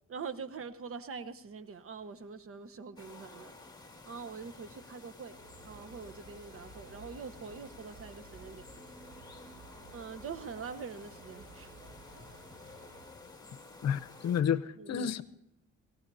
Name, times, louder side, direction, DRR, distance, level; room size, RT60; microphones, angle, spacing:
voice 1, 0.1-3.6 4.0-5.3 5.6-8.6 9.9-11.8 14.8-15.1, right 5 dB, 45° right, 12 dB, 1.0 m, -44 dB
sound 1, 3.0-14.4, left 3 dB, 15° left, 2.2 m, -52 dB
sound 2, 5.3-13.1, right 3 dB, 80° right, 3.2 m, -54 dB
voice 2, 13.8-15.2, left 8 dB, 60° left, 13 dB, 0.8 m, -30 dB
24.0 x 18.0 x 2.7 m, 0.86 s
cardioid pair, 90°, 30 cm